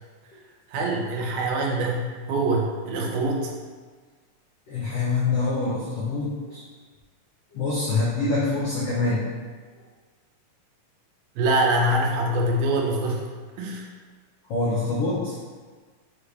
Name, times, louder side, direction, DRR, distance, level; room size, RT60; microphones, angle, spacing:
voice 1, 0.7-2.0 2.3-3.5 11.4-13.2 13.6-13.9, right 1 dB, 90° right, -1 dB, 2.7 m, -24 dB
voice 2, 4.7-6.6 7.5-9.2 14.5-15.3, left 3 dB, 80° left, -7 dB, 1.4 m, -25 dB
6.5 x 4.9 x 3.3 m, 1.5 s
omnidirectional pair, 4.2 m